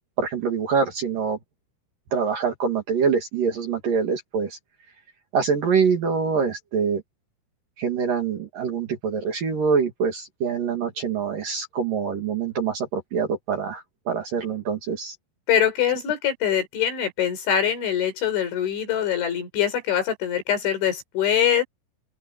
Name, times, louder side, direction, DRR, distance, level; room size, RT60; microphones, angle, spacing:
voice 1, 0.2-1.4 2.1-4.6 5.3-7.0 7.8-15.1, right 6 dB, 50° right, 3.2 m, -25 dB
voice 2, 15.5-21.6, left 9 dB, 65° left, 7.0 m, -23 dB
open air
omnidirectional pair, 5.9 m